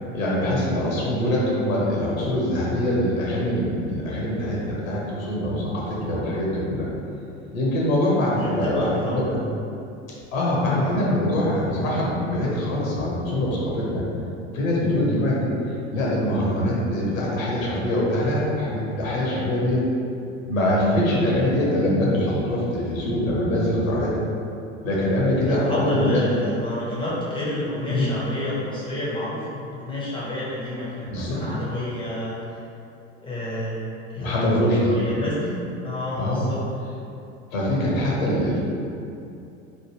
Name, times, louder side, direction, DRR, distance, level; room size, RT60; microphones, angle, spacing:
voice 1, 0.1-6.9 7.5-9.4 10.3-14.0 14.5-15.5 15.9-19.8 20.5-24.1 24.8-26.2 27.9-28.1 31.0-31.5 34.2-34.9 36.2-36.5 37.5-38.6, left 1 dB, 80° left, -5 dB, 0.9 m, -23 dB
voice 2, 8.4-9.2 10.8-11.0 25.5-32.6 33.2-33.8 34.1-34.5 34.8-36.6, left 1 dB, 10° left, -8 dB, 0.7 m, -30 dB
3.2 x 2.2 x 3.1 m, 2.7 s
hypercardioid pair, 80°, 40 cm